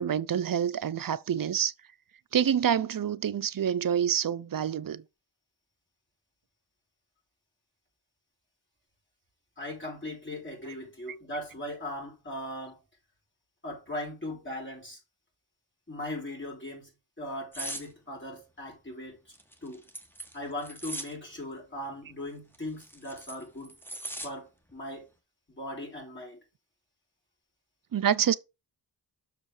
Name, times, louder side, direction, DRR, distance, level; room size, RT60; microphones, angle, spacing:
voice 1, 0.0-1.7 2.3-5.0 27.9-28.4, right 9 dB, 50° right, 0.6 m, -27 dB
voice 2, 9.6-12.8 13.6-15.0 15.9-19.2 19.6-19.8 20.3-23.8 24.2-25.1 25.6-26.4, left 1 dB, 25° left, 5.4 m, -39 dB
sound 1, 17.5-17.9 19.3-21.1 22.5-24.3 24.7-24.9, right 1 dB, 5° left, 1.5 m, -39 dB
6.6 x 5.0 x 4.9 m
wide cardioid pair, 80°, 43 cm